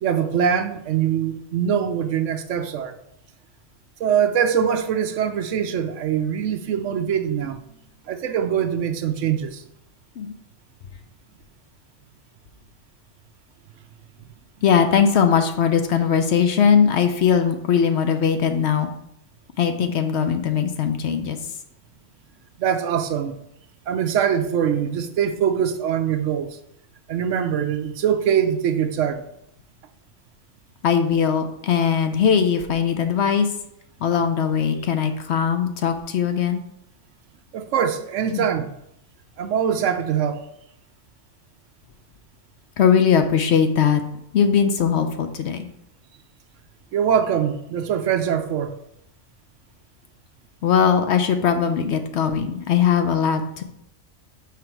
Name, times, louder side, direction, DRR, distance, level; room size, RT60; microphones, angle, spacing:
voice 1, 0.0-3.0 4.0-7.8 8.1-9.6 22.6-23.4 23.9-26.6 27.1-29.2 37.5-38.7 39.4-40.4 46.9-48.8, right 8 dB, 70° right, 0.9 m, -23 dB
voice 2, 14.6-18.9 19.6-21.4 30.8-33.5 34.0-36.6 38.3-38.5 42.8-44.0 44.3-45.7 50.6-53.6, left 7 dB, 65° left, 0.8 m, -20 dB
5.9 x 5.0 x 4.5 m
omnidirectional pair, 1.4 m